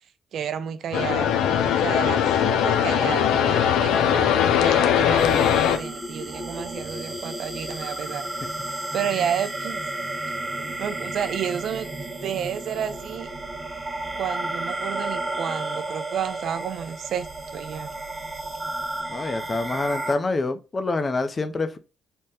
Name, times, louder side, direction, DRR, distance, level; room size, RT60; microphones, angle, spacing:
voice 1, 0.3-1.3 1.8-4.3 4.6-8.2 8.9-9.8 10.6-11.9 12.2-13.3 14.2-17.3 17.5-17.9, right 8 dB, 70° right, 0.4 m, -31 dB
sound 1, 0.9-5.8, left 9 dB, 90° left, 0.4 m, -20 dB
sound 2, 5.2-20.1, right 2 dB, 25° right, 0.8 m, -32 dB
voice 2, 19.1-21.8, left 3 dB, 30° left, 0.5 m, -26 dB
3.5 x 2.1 x 4.1 m
cardioid pair, 90°, 0 cm